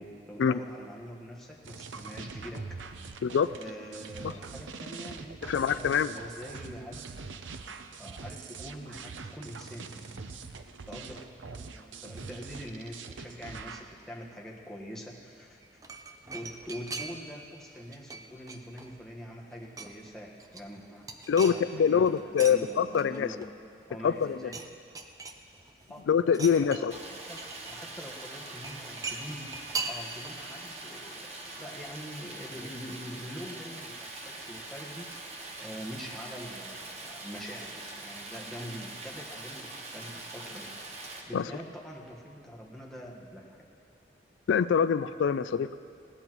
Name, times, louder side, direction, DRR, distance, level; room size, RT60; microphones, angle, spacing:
voice 1, 0.0-2.8 3.5-7.0 8.0-10.4 10.9-15.8 16.3-21.1 21.3-21.6 21.9-23.4 23.9-24.6 25.9-26.1 26.7-27.0 27.3-29.5 29.9-35.1 35.6-40.7 41.3-43.6, equal, ahead, -3 dB, 1.4 m, -44 dB
sound 1, 1.6-13.9, right 4 dB, 80° right, 0.7 m, -43 dB
voice 2, 5.4-6.1 21.3-23.3 24.0-24.5 26.1-27.0 41.3-41.5 44.5-45.7, left 7 dB, 80° left, 14 dB, 0.3 m, -25 dB
sound 2, 15.6-17.4 17.7-19.1 19.4-20.1 20.4-22.6 22.9-23.8 24.1-24.7 25.0-25.8 26.3-27.8 28.6-30.4 30.7-30.8, right 4 dB, 20° right, 0.6 m, -40 dB
Stream, 26.9-41.2, right 2 dB, 35° right, 1.1 m, -43 dB
20.0 x 16.5 x 3.1 m, 2.3 s
head